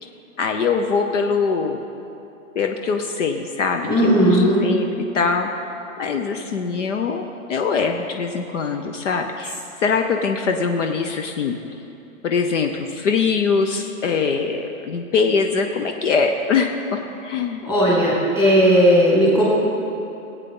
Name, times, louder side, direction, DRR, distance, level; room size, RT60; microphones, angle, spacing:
voice 1, 0.4-1.8 2.6-4.9 5.1-5.5 6.0-9.5 9.8-11.6 12.2-16.7 17.2-17.6, left 5 dB, 60° left, 4 dB, 0.9 m, -22 dB
voice 2, 3.9-4.7 17.6-19.4, equal, 10° left, -7 dB, 2.1 m, -16 dB
19.0 x 8.3 x 3.8 m, 2.8 s
hypercardioid pair, 170°, 42 cm